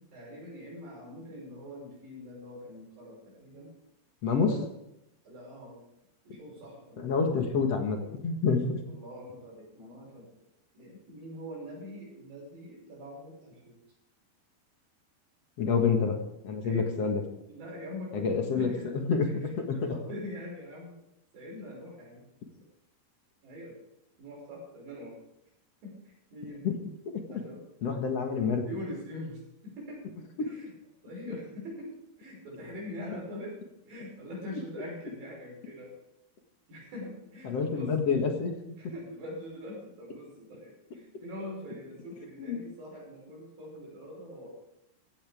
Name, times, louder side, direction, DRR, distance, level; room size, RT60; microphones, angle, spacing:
voice 1, 0.1-3.7 4.3-4.7 5.2-5.8 6.2-7.1 8.9-10.3 10.7-13.8 15.6-15.9 16.6-16.9 17.5-18.9 19.3-21.0 21.3-22.2 23.4-23.8 24.2-25.2 25.8-26.6 27.3-27.7 28.6-30.0 30.4-30.7 31.0-31.9 32.2-33.6 33.9-36.0 36.7-38.1 38.8-44.5, left 1 dB, 60° right, -3 dB, 8.0 m, -43 dB
voice 2, 4.2-4.5 7.0-8.8 15.6-16.2 16.4-17.2 18.1-19.3 19.7-20.0 26.6-26.8 27.1-27.3 27.8-28.6 30.4-30.5 37.4-38.5 42.4-42.6, left 5 dB, 50° left, 3 dB, 2.2 m, -28 dB
16.5 x 15.5 x 3.6 m, 0.85 s
omnidirectional pair, 4.6 m